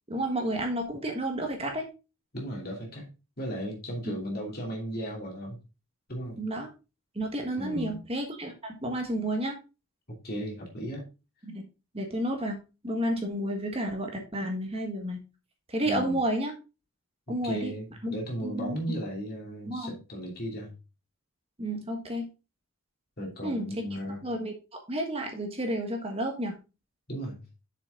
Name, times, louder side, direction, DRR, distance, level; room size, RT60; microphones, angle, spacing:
voice 1, 0.1-1.8 4.0-4.1 6.4-6.7 7.1-9.5 11.4-11.6 11.9-12.6 12.8-15.2 15.7-16.5 17.3-17.7 18.0-18.1 18.4-18.8 19.6-20.0 21.6-22.3 23.4-23.7 24.2-26.6, right 1 dB, 25° right, 1.5 m, -31 dB
voice 2, 2.3-3.1 3.4-5.6 6.1-6.4 7.6-8.0 10.1-11.1 15.9-16.2 17.3-20.7 23.2-24.2 27.1-27.4, equal, 45° left, 2.8 m, -36 dB
7.0 x 6.1 x 3.8 m
head